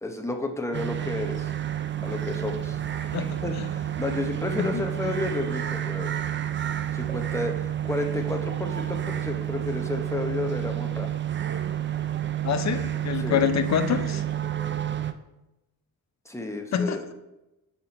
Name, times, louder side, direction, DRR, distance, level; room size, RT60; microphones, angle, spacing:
voice 1, 0.0-1.5 2.0-2.8 3.2-6.1 6.9-11.1 13.2-13.5 16.3-17.1, left 2 dB, 10° left, 4 dB, 0.8 m, -32 dB
sound 1, 0.7-15.1, right 11 dB, 35° right, 0.4 m, -30 dB
voice 2, 3.1-3.7 4.6-4.8 12.4-14.2 16.7-17.1, left 8 dB, 50° left, 11 dB, 0.6 m, -26 dB
5.6 x 4.4 x 5.2 m, 0.97 s
cardioid pair, 95°, 35 cm